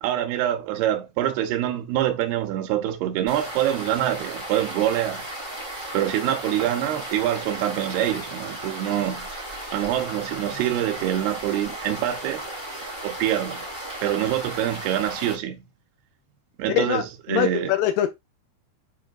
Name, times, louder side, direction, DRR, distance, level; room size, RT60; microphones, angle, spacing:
voice 1, 0.0-5.3 5.9-9.3 9.7-12.4 13.0-13.7 14.0-15.6 16.6-17.8, right 12 dB, 80° right, 2.8 m, -25 dB
sound 1, 3.3-15.3, right 1 dB, 15° right, 2.3 m, -35 dB
voice 2, 16.7-17.0 17.3-18.1, left 12 dB, 80° left, 2.1 m, -22 dB
10.0 x 3.9 x 2.4 m
omnidirectional pair, 4.6 m